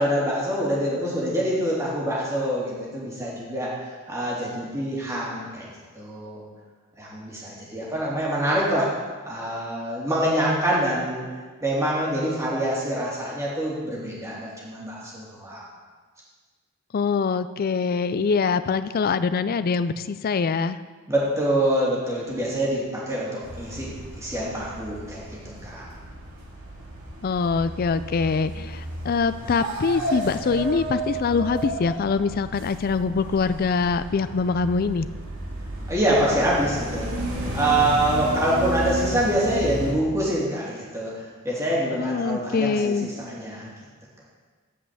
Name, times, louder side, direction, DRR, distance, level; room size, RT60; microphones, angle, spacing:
voice 1, 0.0-3.7 4.1-5.7 5.9-6.4 7.0-8.9 9.2-11.2 11.6-15.6 21.1-23.9 24.2-25.8 35.9-37.1 37.5-43.7, right 1 dB, 15° right, -6 dB, 2.9 m, -25 dB
voice 2, 16.9-20.8 27.2-35.1 42.0-43.1, left 5 dB, 45° left, 12 dB, 0.4 m, -24 dB
sound 1, 23.4-39.9, right 1 dB, 75° right, 2.2 m, -33 dB
8.7 x 5.5 x 7.8 m, 1.4 s
head